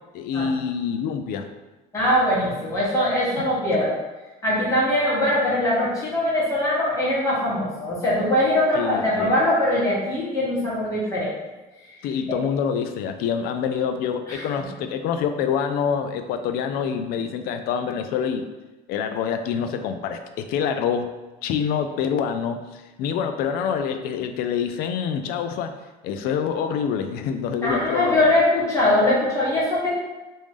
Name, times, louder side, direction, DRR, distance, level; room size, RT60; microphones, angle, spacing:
voice 1, 0.1-1.5 8.7-9.4 12.0-18.5 18.9-21.1 21.4-25.8 26.0-28.2, left 7 dB, 65° left, 8 dB, 0.4 m, -26 dB
voice 2, 1.9-4.0 4.4-11.3 12.3-12.4 14.3-14.4 27.6-29.9, left 1 dB, 20° left, -7 dB, 1.3 m, -22 dB
3.1 x 2.6 x 3.5 m, 1.1 s
cardioid pair, 150°, 17 cm